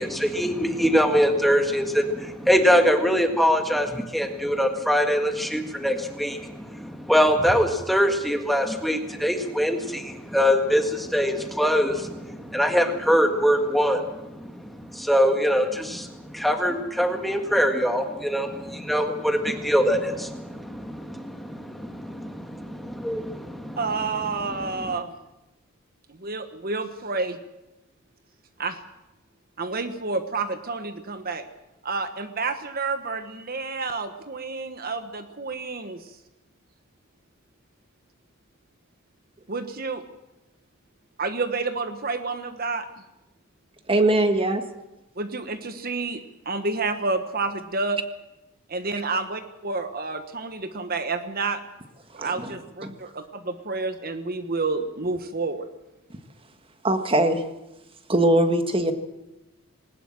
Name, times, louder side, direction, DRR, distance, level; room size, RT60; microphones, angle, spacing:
voice 1, 0.0-14.2 14.5-23.8 24.6-24.7, equal, ahead, 5 dB, 1.8 m, -23 dB
voice 2, 23.8-25.1 26.2-27.4 28.6-28.8 29.6-31.4 31.8-36.1 39.5-40.0 41.2-42.9 45.2-48.0 48.7-51.6 52.2-55.7, right 3 dB, 45° right, 9 dB, 1.3 m, -29 dB
voice 3, 43.9-44.6 52.1-52.5 52.8-52.9 56.8-57.4 58.1-58.9, right 1 dB, 25° right, 7 dB, 1.7 m, -21 dB
20.5 x 19.0 x 7.7 m, 0.96 s
head